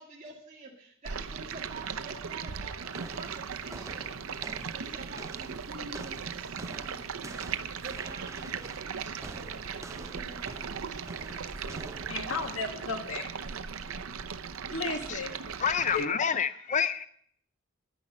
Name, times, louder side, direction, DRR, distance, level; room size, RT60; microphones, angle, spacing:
voice 1, 0.0-4.1 4.8-7.4 7.6-11.2, right 2 dB, 35° right, -4 dB, 2.0 m, -48 dB
Stream, 1.0-16.0, right 6 dB, 85° right, 0.7 m, -38 dB
sound 1, 2.9-12.8, right 2 dB, 15° right, 0.6 m, -47 dB
voice 2, 11.3-13.6 14.7-15.3 15.9-16.0, left 3 dB, 75° left, 5 dB, 1.6 m, -35 dB
voice 3, 15.6-17.1, left 7 dB, 35° left, 12 dB, 0.5 m, -28 dB
10.0 x 10.0 x 7.3 m, 0.63 s
head